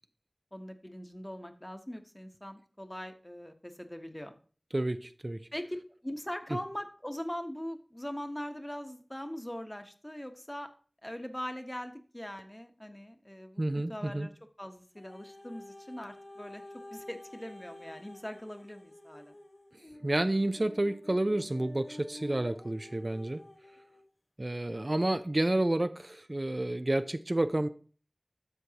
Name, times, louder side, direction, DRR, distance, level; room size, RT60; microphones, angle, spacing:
voice 1, 0.5-4.3 5.5-5.8 6.0-10.7 11.0-13.6 13.9-14.3 14.6-16.6 16.9-19.4, equal, 20° left, 6 dB, 1.1 m, -41 dB
voice 2, 4.7-5.4 13.6-14.3 20.0-23.4 24.4-27.7, right 1 dB, 50° right, 10 dB, 0.5 m, -30 dB
sound 1, 14.9-24.0 24.7-24.8, left 1 dB, 85° left, 2.1 m, -50 dB
12.5 x 6.8 x 2.9 m, 0.40 s
wide cardioid pair, 40°, 0 cm